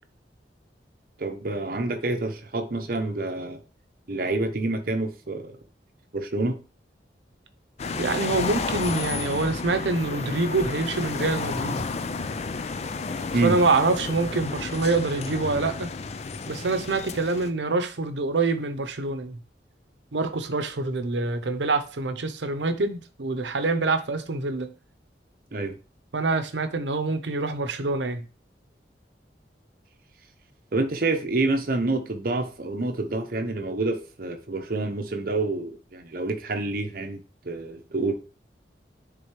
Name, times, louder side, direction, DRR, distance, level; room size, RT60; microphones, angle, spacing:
voice 1, 1.2-3.6 4.1-5.6 6.1-6.6 13.3-13.6 25.5-25.8 30.7-37.2 37.4-38.3, right 2 dB, 50° right, 0.8 m, -27 dB
sound 1, 7.8-17.5, left 4 dB, 35° left, 0.4 m, -32 dB
voice 2, 7.9-11.9 13.4-15.9 16.5-19.4 20.1-24.7 26.1-28.3, right 3 dB, 85° right, 0.7 m, -26 dB
9.9 x 3.8 x 3.1 m
head